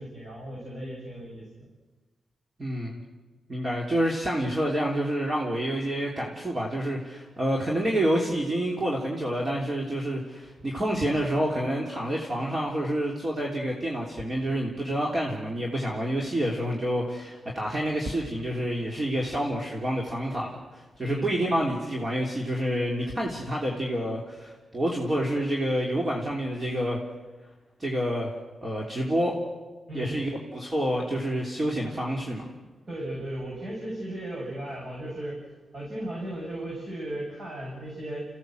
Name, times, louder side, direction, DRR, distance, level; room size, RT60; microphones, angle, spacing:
voice 1, 0.0-1.7 21.0-21.3 29.9-30.2 32.9-35.4 35.7-38.3, right 1 dB, 45° right, -3 dB, 7.6 m, -36 dB
voice 2, 2.6-3.0 3.5-27.0 27.8-28.3 28.6-29.4 29.9-32.5, equal, 30° right, -1 dB, 3.2 m, -28 dB
28.5 x 16.0 x 7.9 m, 1.2 s
wide cardioid pair, 110°, 0 cm